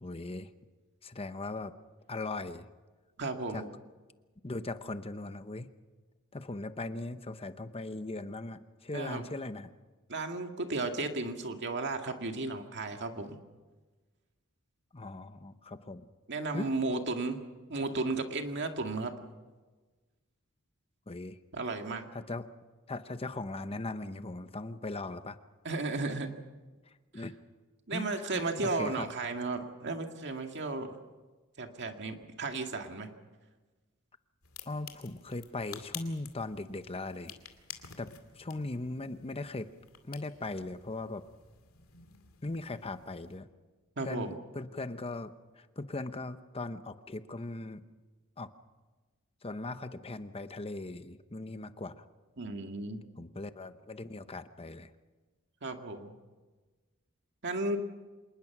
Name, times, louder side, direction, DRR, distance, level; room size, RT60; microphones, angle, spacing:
voice 1, 0.0-0.5 1.0-1.7 2.1-2.6 3.5-3.6 4.4-5.7 6.3-9.7 14.9-16.0 16.5-16.7 21.1-21.4 22.1-22.5 22.9-25.4 27.1-27.3 27.9-29.1 34.7-37.3 38.0-39.7 40.1-41.2 42.4-43.5 44.0-47.8 48.4-48.5 49.4-52.0 53.2-54.9, left 2 dB, 25° left, 11 dB, 0.9 m, -39 dB
voice 2, 3.2-3.7 8.9-9.3 10.1-13.4 16.3-17.4 17.7-19.1 21.5-22.1 25.6-26.3 27.9-31.0 31.6-33.1 44.0-44.3 52.4-53.0 55.6-56.1 57.4-57.8, right 3 dB, 55° right, 4 dB, 2.1 m, -34 dB
sound 1, 34.4-43.4, left 9 dB, 75° left, 2.3 m, -51 dB
27.0 x 20.0 x 6.0 m, 1.3 s
head